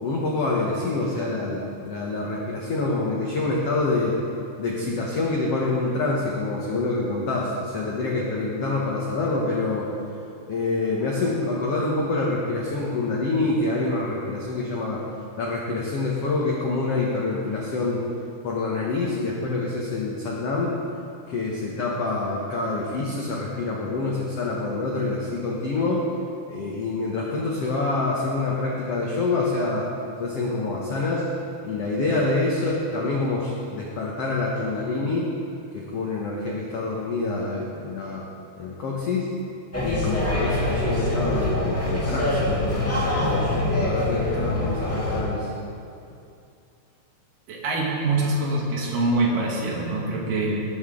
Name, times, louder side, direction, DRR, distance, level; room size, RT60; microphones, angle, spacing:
voice 1, 0.0-4.2 4.6-9.9 10.4-15.0 15.4-18.0 18.4-20.8 21.3-26.1 26.5-29.9 30.2-31.3 31.6-35.3 35.7-38.3 38.5-39.3 39.8-43.4 43.8-45.5, left 3 dB, 80° left, -3 dB, 1.3 m, -26 dB
sound 1, 39.7-45.2, left 1 dB, 20° left, 0.3 m, -24 dB
voice 2, 47.5-50.7, right 2 dB, 65° right, -2 dB, 2.8 m, -24 dB
19.0 x 7.9 x 3.8 m, 2.5 s
omnidirectional pair, 4.6 m